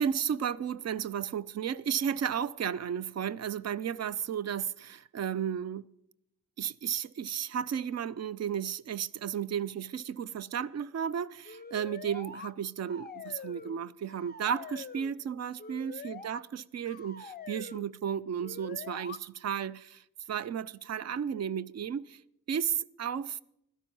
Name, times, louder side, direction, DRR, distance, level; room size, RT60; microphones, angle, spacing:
voice 1, 0.0-5.9 6.6-22.2 22.5-23.4, right 8 dB, 50° right, 0.4 m, -33 dB
sound 1, 11.4-12.5 12.9-13.8 14.1-15.1 15.6-16.4 16.8-17.8 18.4-19.2, left 5 dB, 25° left, 0.6 m, -45 dB
16.5 x 12.5 x 5.4 m
wide cardioid pair, 155°, 35 cm